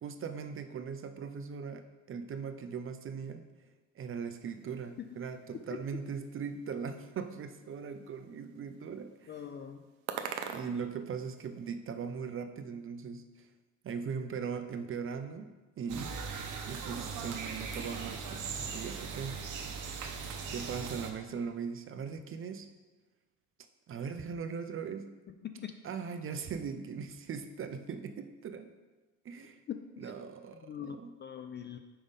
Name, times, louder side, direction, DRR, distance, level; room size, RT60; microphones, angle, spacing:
voice 1, 0.0-3.4 4.0-9.4 10.5-13.5 13.8-16.2 16.7-19.4 20.5-22.7 23.9-25.2 25.8-28.7 29.2-29.6 30.0-31.2, right 6 dB, 30° right, 9 dB, 0.5 m, -39 dB
sound 1, 4.4-11.7, right 8 dB, 80° right, 0.6 m, -47 dB
voice 2, 9.3-9.9 25.4-25.8 29.7-30.1 30.6-31.8, left 9 dB, 30° left, 7 dB, 0.4 m, -42 dB
sound 2, 15.9-21.1, right 5 dB, 45° right, 0.9 m, -39 dB
5.4 x 3.5 x 5.3 m, 1.2 s
hypercardioid pair, 70°, 41 cm